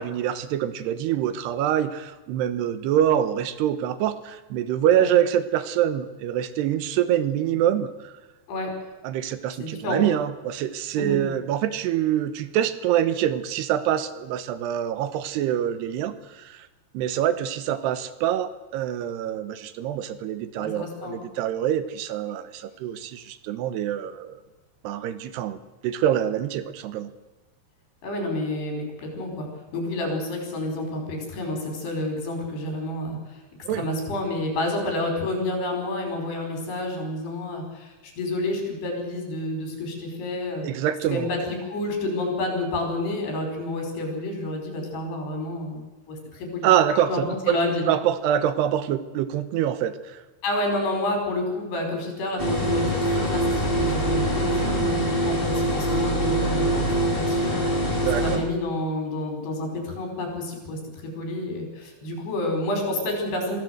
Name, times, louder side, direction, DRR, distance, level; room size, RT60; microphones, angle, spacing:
voice 1, 0.0-8.1 9.0-16.6 16.9-24.4 24.8-27.1 33.7-33.9 40.6-41.3 46.6-47.1 47.5-47.6 47.9-50.2 58.1-58.4, right 10 dB, 80° right, 12 dB, 3.0 m, -25 dB
voice 2, 9.6-10.0 11.0-11.2 20.6-21.2 28.0-33.4 33.7-40.7 41.1-46.7 47.1-47.8 50.4-57.7 58.1-63.6, left 1 dB, 75° left, 3 dB, 7.0 m, -29 dB
sound 1, 52.4-58.4, right 1 dB, 15° left, 3.1 m, -24 dB
23.5 x 15.5 x 7.9 m, 1.2 s
omnidirectional pair, 4.8 m